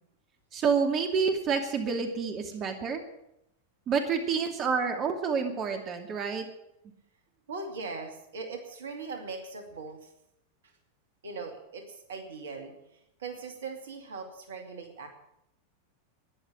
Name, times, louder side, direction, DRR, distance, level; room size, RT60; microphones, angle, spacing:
voice 1, 0.5-3.0 3.9-6.5, right 5 dB, 30° right, 4 dB, 2.5 m, -28 dB
voice 2, 7.5-10.1 11.2-12.7 13.2-15.1, right 4 dB, 65° right, 5 dB, 2.6 m, -40 dB
13.5 x 10.5 x 9.9 m, 0.80 s
figure-of-eight pair, 90°, 0 cm